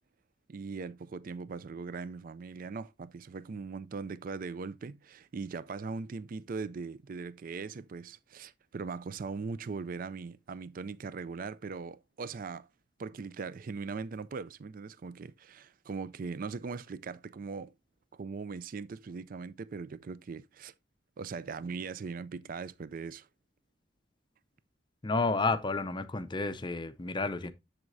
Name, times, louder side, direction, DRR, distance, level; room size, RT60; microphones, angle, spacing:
voice 1, 0.5-12.7 13.0-17.7 18.1-20.7 21.2-23.3, right 4 dB, 45° right, 0.4 m, -40 dB
voice 2, 25.0-27.5, left 3 dB, 25° left, 0.6 m, -31 dB
7.8 x 7.4 x 2.6 m
head